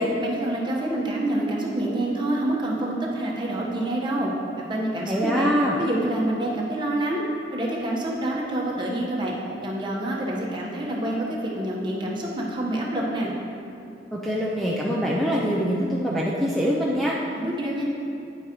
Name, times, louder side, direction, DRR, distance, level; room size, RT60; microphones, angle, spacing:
voice 1, 0.2-4.3 4.7-5.5 5.8-7.2 7.5-9.3 9.6-13.3 17.4-17.9, right 1 dB, 25° right, -4 dB, 1.2 m, -27 dB
voice 2, 5.1-5.8 14.1-17.2, equal, ahead, -5 dB, 0.5 m, -24 dB
9.4 x 8.7 x 3.1 m, 2.7 s
head